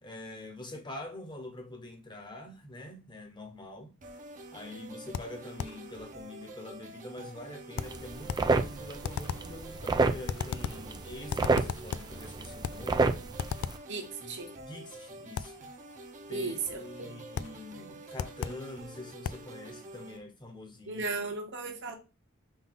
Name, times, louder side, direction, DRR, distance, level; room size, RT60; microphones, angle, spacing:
voice 1, 0.0-3.9 4.5-13.3 14.2-15.5 16.3-21.0, left 1 dB, 20° left, 1.0 m, -45 dB
sound 1, 4.0-20.2, right 2 dB, 35° right, 0.9 m, -48 dB
sound 2, 5.1-5.9 7.8-8.6 9.0-9.6 10.3-10.9 11.3-12.2 12.6-12.9 13.4-13.9 15.4-15.6 17.4-17.6 18.2-18.7 19.2-19.5, left 7 dB, 75° left, 0.3 m, -36 dB
sound 3, 7.8-13.8, right 3 dB, 20° right, 0.4 m, -31 dB
voice 2, 13.9-14.5 16.3-16.8 20.9-22.0, right 3 dB, 60° right, 1.3 m, -35 dB
5.5 x 2.7 x 3.5 m
head